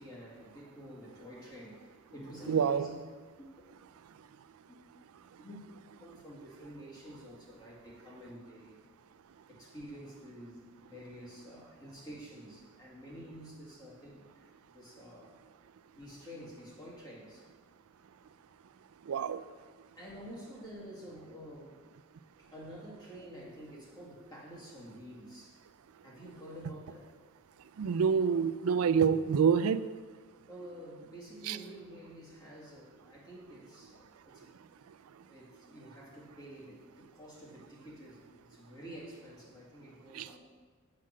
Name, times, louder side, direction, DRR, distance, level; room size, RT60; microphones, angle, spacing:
voice 1, 0.0-2.9 3.4-3.5 4.7-4.8 5.4-5.6 6.0-8.8 9.5-15.4 15.9-17.5 20.0-21.9 22.4-25.6 26.0-27.2 30.5-34.5 35.3-40.4, equal, 20° left, -5 dB, 2.1 m, -49 dB
voice 2, 2.5-2.9 19.1-19.4 27.8-29.8 31.5-31.6 40.1-40.3, right 6 dB, 85° right, 14 dB, 0.4 m, -27 dB
7.5 x 5.8 x 6.3 m, 1.5 s
head